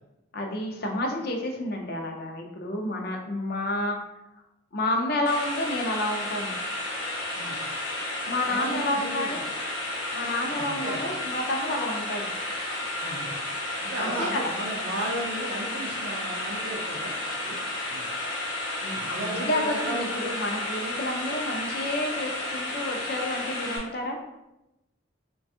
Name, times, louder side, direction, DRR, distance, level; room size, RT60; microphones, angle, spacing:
voice 1, 0.3-4.0 4.7-6.5 8.2-9.4 10.1-12.3 14.0-14.5 18.8-24.2, left 1 dB, 50° left, 2 dB, 0.4 m, -30 dB
sound 1, 5.3-23.8, left 1 dB, 85° left, 0.8 m, -32 dB
voice 2, 8.4-9.4 10.5-11.1 13.0-13.3 13.8-17.1 17.4-17.6 17.9-18.1 18.9-20.3, right 1 dB, 60° right, -3 dB, 0.4 m, -34 dB
3.3 x 2.2 x 2.5 m, 0.95 s
head